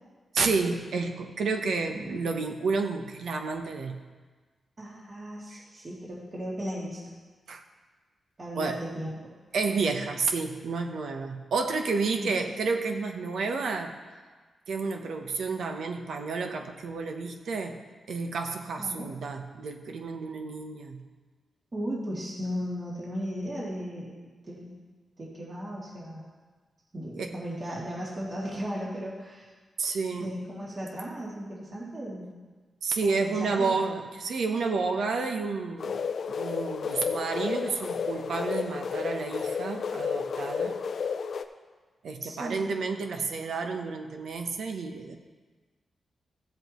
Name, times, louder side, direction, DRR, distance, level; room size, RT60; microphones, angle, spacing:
voice 1, 0.3-4.0 5.5-5.6 7.5-7.6 8.5-8.8 9.5-14.0 14.7-17.8 18.1-21.0 27.2-27.3 29.8-30.3 32.8-40.8 42.0-45.2, right 4 dB, 80° right, 4 dB, 0.9 m, -30 dB
voice 2, 4.8-7.1 8.4-9.3 12.2-12.4 18.8-19.1 21.7-24.1 24.4-24.7 25.2-26.2 26.9-29.5 30.2-32.3 33.0-33.7 42.2-42.7, equal, 40° right, -6 dB, 2.5 m, -36 dB
sound 1, 35.8-41.4, left 6 dB, 70° left, 0.5 m, -32 dB
14.5 x 7.7 x 3.1 m, 1.4 s
cardioid pair, 70°, 0 cm